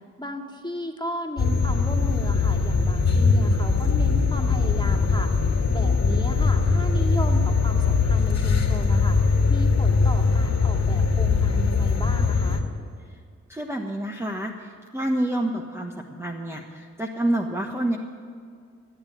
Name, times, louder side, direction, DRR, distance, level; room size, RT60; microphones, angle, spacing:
voice 1, 0.2-5.3 5.7-12.6, equal, 15° left, 2 dB, 2.2 m, -35 dB
sound 1, 1.4-12.6, left 4 dB, 50° left, 1.9 m, -21 dB
voice 2, 13.5-18.0, right 1 dB, 5° right, 1 dB, 1.2 m, -28 dB
15.0 x 8.3 x 9.3 m, 2.2 s
hypercardioid pair, 40°, 34 cm